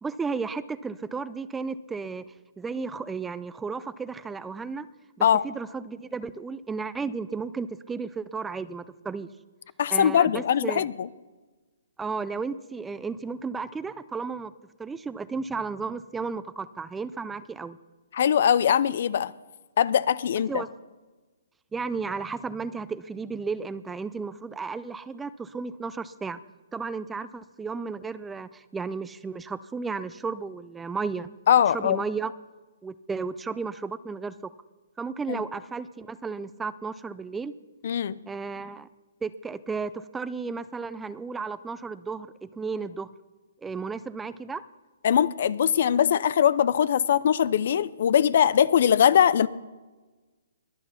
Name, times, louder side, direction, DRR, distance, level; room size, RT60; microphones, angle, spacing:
voice 1, 0.0-2.2 2.6-4.9 5.2-9.3 9.9-10.9 12.0-14.5 14.8-17.8 20.5-20.7 21.7-26.4 26.7-31.3 31.7-32.3 32.8-34.4 35.0-37.5 38.3-38.9 39.2-43.1 43.6-44.6, right 4 dB, 10° right, 16 dB, 0.4 m, -33 dB
voice 2, 9.8-11.1 18.1-19.3 19.8-20.6 31.5-32.0 35.3-35.4 37.8-38.2 45.0-49.5, left 9 dB, 55° left, 19 dB, 0.5 m, -21 dB
21.0 x 8.1 x 5.7 m, 1.3 s
hypercardioid pair, 155°, 0 cm